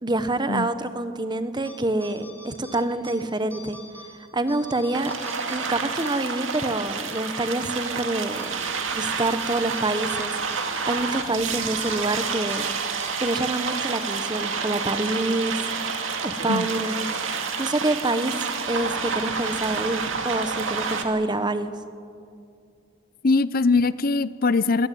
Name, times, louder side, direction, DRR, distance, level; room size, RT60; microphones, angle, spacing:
voice 1, 0.0-3.8 4.3-5.1 5.5-8.5 8.9-12.7 13.2-15.6 16.2-17.1 17.6-18.4 18.7-21.7, right 2 dB, 20° right, 11 dB, 1.0 m, -27 dB
sound 1, 1.6-1.7 2.0-3.1 3.5-4.1 4.4-6.6 6.9-7.0 7.5-7.9 8.4-8.7 9.4-9.8 10.1-10.2 10.5-10.6 10.9-11.1 11.7-11.9 12.5-12.6 13.0-13.1, left 1 dB, 10° left, 4.1 m, -44 dB
sound 2, 4.9-21.0, right 5 dB, 65° right, 2.2 m, -29 dB
voice 2, 23.2-24.9, left 3 dB, 45° left, 16 dB, 0.6 m, -21 dB
23.0 x 17.0 x 9.3 m, 2.5 s
head